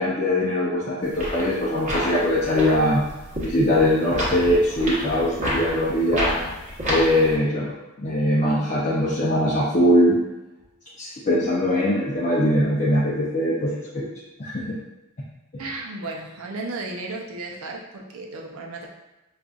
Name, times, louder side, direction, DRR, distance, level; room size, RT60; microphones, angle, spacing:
voice 1, 0.0-3.0 3.4-6.4 6.8-7.7 8.0-10.2 11.0-14.1 14.4-14.7 15.5-15.6, left 1 dB, 35° left, -7 dB, 0.5 m, -21 dB
sound 1, 1.0-7.3, equal, 35° right, 1.0 m, -29 dB
voice 2, 15.6-18.9, right 2 dB, 75° right, 0 dB, 0.6 m, -34 dB
5.1 x 2.4 x 2.4 m, 1.0 s
head